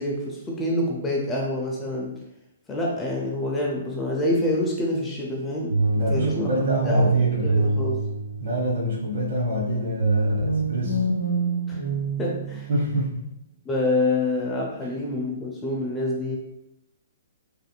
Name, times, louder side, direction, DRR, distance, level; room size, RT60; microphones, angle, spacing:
voice 1, 0.0-2.2 2.7-6.5 6.8-7.1 7.4-8.0 11.7-11.8 12.2-12.7 13.7-16.4, left 1 dB, 15° left, -2 dB, 0.5 m, -27 dB
sound 1, 5.7-8.8 10.0-12.9, right 3 dB, 90° right, 0.4 m, -25 dB
voice 2, 5.9-7.7 8.4-11.0 12.7-13.2, equal, 55° right, -3 dB, 1.2 m, -26 dB
3.3 x 2.7 x 2.2 m, 0.85 s
figure-of-eight pair, 125°, 0 cm